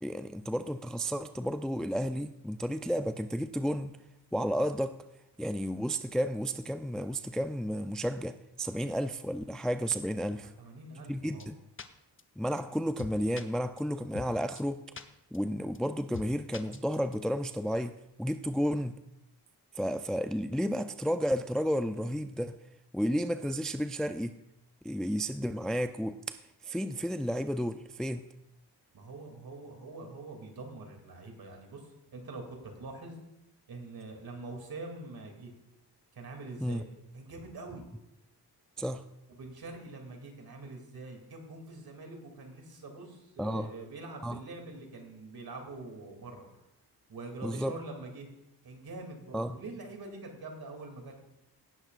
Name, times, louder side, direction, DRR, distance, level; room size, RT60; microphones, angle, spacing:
voice 1, 0.0-3.9 4.3-5.0 5.4-10.5 11.1-11.6 12.4-14.8 15.3-18.9 19.8-22.6 22.9-24.3 24.8-26.2 26.6-28.3 36.6-36.8 38.8-39.0 43.4-43.7 44.2-44.4 47.4-47.7 49.3-49.6, equal, ahead, 9 dB, 0.4 m, -32 dB
voice 2, 10.4-11.5 28.9-33.2 33.7-35.5 36.1-36.9 37.1-37.8 39.3-46.6 47.1-48.3 48.6-51.2, right 2 dB, 60° right, 3 dB, 2.8 m, -44 dB
sound 1, 11.4-11.5 11.8-11.9 12.2-12.3 12.6-12.7 13.0-13.4 13.8-13.9 14.1-14.3 14.6-14.7 15.0-15.1 15.3-15.4 15.7-15.8 16.1-16.3 16.5-17.1, left 5 dB, 30° left, 0.8 m, -42 dB
17.5 x 10.5 x 2.5 m, 0.89 s
cardioid pair, 90°, 40 cm